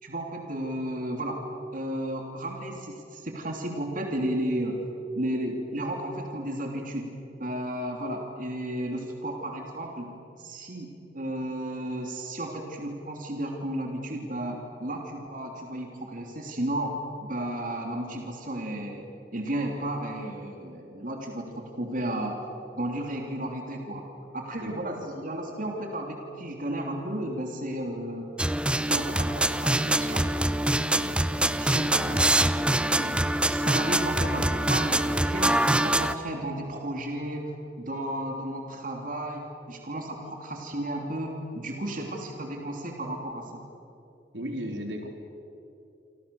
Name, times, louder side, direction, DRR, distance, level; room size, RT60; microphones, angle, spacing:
voice 1, 0.0-1.5 1.7-4.8 5.1-22.4 22.7-24.0 24.3-28.3 28.7-30.2 31.6-32.1 32.6-33.2 33.5-43.6, right 1 dB, 50° right, 2 dB, 3.2 m, -33 dB
sound 1, 28.4-36.1, right 1 dB, 5° right, 0.7 m, -24 dB
voice 2, 30.9-31.3 44.3-45.1, equal, 80° right, 3 dB, 3.8 m, -36 dB
28.0 x 26.0 x 7.1 m, 2.7 s
head